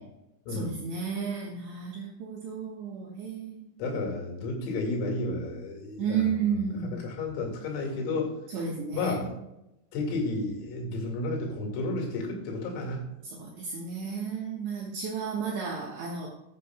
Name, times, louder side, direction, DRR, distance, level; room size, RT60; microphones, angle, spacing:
voice 1, 0.5-3.8 6.0-7.1 8.5-9.3 13.4-16.3, right 6 dB, 70° right, -3 dB, 3.2 m, -32 dB
voice 2, 3.8-8.3 8.9-9.3 9.9-13.1, left 2 dB, 85° left, 1 dB, 4.7 m, -32 dB
15.0 x 9.7 x 2.3 m, 0.89 s
omnidirectional pair, 5.9 m